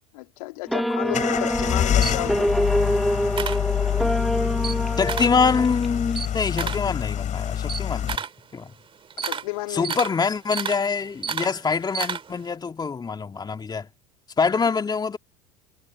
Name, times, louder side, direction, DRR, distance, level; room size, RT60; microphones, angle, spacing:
voice 1, 0.1-2.7 6.6-6.7 9.2-10.0, left 22 dB, 65° left, 2.7 m, -33 dB
sound 1, 0.7-6.2, equal, ahead, 2.4 m, -25 dB
sound 2, 1.1-8.2, left 10 dB, 40° left, 4.2 m, -26 dB
Camera, 1.6-4.2 4.5-5.4 5.8-12.5, right 6 dB, 25° right, 2.7 m, -32 dB
voice 2, 5.0-8.2 8.5-8.7 9.7-13.9 14.4-15.2, left 5 dB, 20° left, 2.1 m, -25 dB
hypercardioid pair, 75°, 20 cm